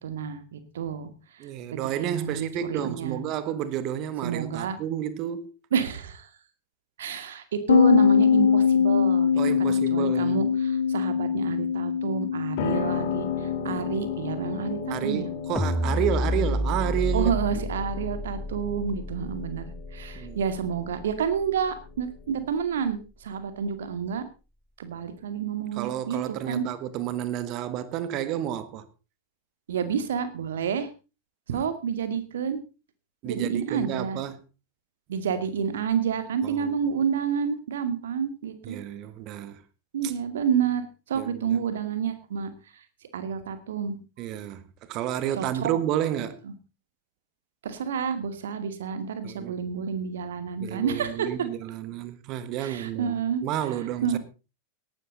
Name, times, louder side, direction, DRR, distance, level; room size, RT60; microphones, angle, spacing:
voice 1, 0.0-3.2 4.2-4.8 5.7-6.3 7.0-9.4 9.9-15.3 17.1-24.3 24.8-26.6 29.7-30.9 31.5-32.6 33.3-34.2 35.1-38.8 39.9-42.8 43.1-44.0 45.4-45.8 46.4-46.5 47.6-51.3 52.6-53.4 54.0-54.2, right 7 dB, 60° right, 2.2 m, -29 dB
voice 2, 1.4-5.5 9.4-10.4 13.6-14.1 14.9-17.3 20.1-20.4 25.8-28.9 31.5-31.6 33.2-34.4 36.4-36.7 38.6-39.6 40.0-40.1 41.1-41.6 44.2-46.4 49.2-49.6 50.6-54.2, right 11 dB, 40° right, 1.6 m, -31 dB
sound 1, 7.7-17.1, left 6 dB, 70° left, 1.1 m, -24 dB
Piano, 12.6-22.5, left 8 dB, 50° left, 2.3 m, -36 dB
sound 2, 15.6-21.9, left 1 dB, 5° left, 0.8 m, -30 dB
18.0 x 12.0 x 4.0 m
figure-of-eight pair, 90°, 0 cm